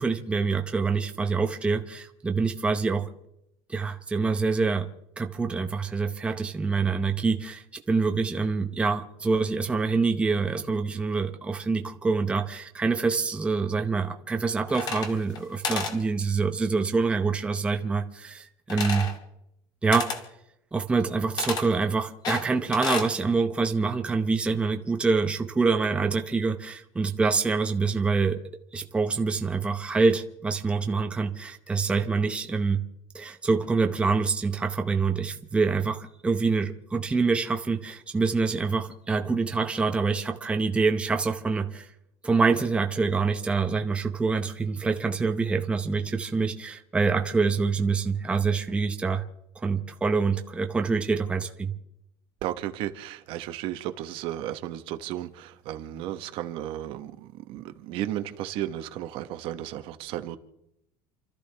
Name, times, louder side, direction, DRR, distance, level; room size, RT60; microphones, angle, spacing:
voice 1, 0.0-3.1 3.7-4.9 5.2-19.1 19.8-20.1 20.7-28.4 28.7-32.8 33.1-41.9 42.2-49.2 49.6-51.7, right 4 dB, 10° right, 0.8 m, -26 dB
sound 1, 14.7-15.4 15.6-16.0 18.7-19.2 19.9-20.2 21.4-21.7 22.2-23.1, left 4 dB, 40° left, 2.2 m, -31 dB
voice 2, 52.4-60.4, right 12 dB, 55° right, 1.2 m, -34 dB
29.0 x 13.5 x 3.4 m
cardioid pair, 165°, 11 cm